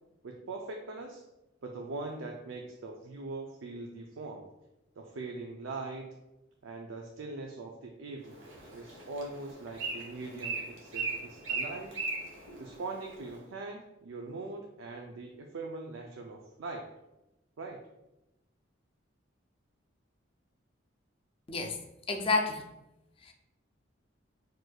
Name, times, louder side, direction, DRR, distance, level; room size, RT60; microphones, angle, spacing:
voice 1, 0.2-1.2 1.6-4.5 5.0-6.1 6.6-8.4 8.7-11.9 12.6-16.9 17.6-17.8, right 3 dB, 90° right, 2 dB, 0.4 m, -41 dB
Bird, 8.2-13.4, right 4 dB, 70° right, 1.0 m, -39 dB
voice 2, 22.1-22.7 23.2-23.3, left 3 dB, 30° left, 3 dB, 0.4 m, -29 dB
6.0 x 2.6 x 2.3 m, 0.93 s
head